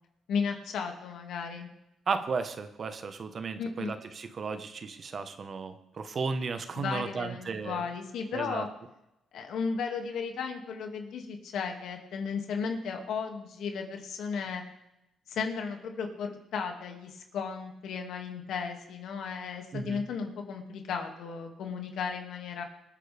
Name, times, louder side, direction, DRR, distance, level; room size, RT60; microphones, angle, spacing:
voice 1, 0.3-1.7 3.6-3.9 6.8-8.7 9.3-14.6 15.3-22.6, left 5 dB, 75° left, 3 dB, 2.2 m, -35 dB
voice 2, 2.1-7.8 8.3-8.7 19.7-20.0, right 4 dB, 45° right, 9 dB, 1.2 m, -34 dB
25.5 x 9.0 x 3.5 m, 0.89 s
cardioid pair, 90°, 0 cm